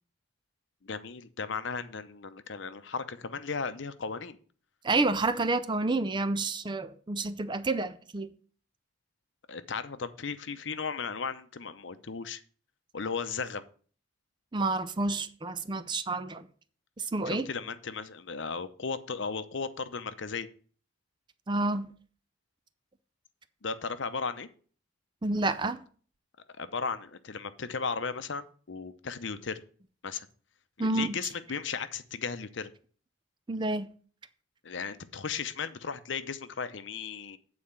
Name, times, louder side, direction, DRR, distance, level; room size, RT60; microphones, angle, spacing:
voice 1, 0.8-4.4 9.5-12.4 12.9-13.6 17.3-20.5 23.6-24.5 26.6-29.6 30.0-30.3 30.8-32.7 34.6-37.4, left 5 dB, 65° left, 0.7 m, -36 dB
voice 2, 4.8-8.3 14.5-16.5 17.0-17.5 21.5-21.9 25.2-25.8 30.8-31.2 33.5-33.9, right 2 dB, 25° right, 0.4 m, -29 dB
8.7 x 4.3 x 7.1 m
head